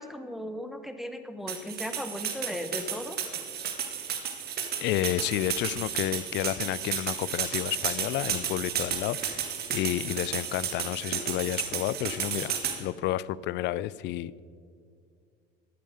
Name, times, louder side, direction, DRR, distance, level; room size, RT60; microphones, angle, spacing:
voice 1, 0.0-3.3, left 1 dB, ahead, 8 dB, 0.8 m, -37 dB
sound 1, 1.5-12.8, right 8 dB, 50° right, 1.8 m, -33 dB
voice 2, 4.8-14.4, left 14 dB, 60° left, 20 dB, 0.4 m, -31 dB
13.5 x 8.9 x 5.1 m, 2.3 s
supercardioid pair, 95°, 20 cm